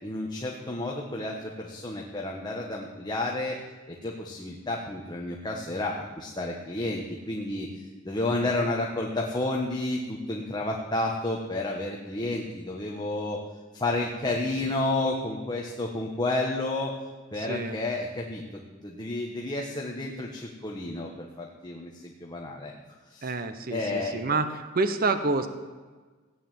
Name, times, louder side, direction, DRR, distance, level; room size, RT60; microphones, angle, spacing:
voice 1, 0.0-3.6 3.9-13.4 13.7-17.0 17.3-18.4 18.8-22.7 23.1-23.3 23.7-24.2, left 2 dB, 20° left, 0 dB, 1.4 m, -31 dB
voice 2, 8.3-8.7 17.4-17.8 23.2-25.5, right 3 dB, 50° right, 10 dB, 1.0 m, -28 dB
16.5 x 9.5 x 7.7 m, 1.4 s
head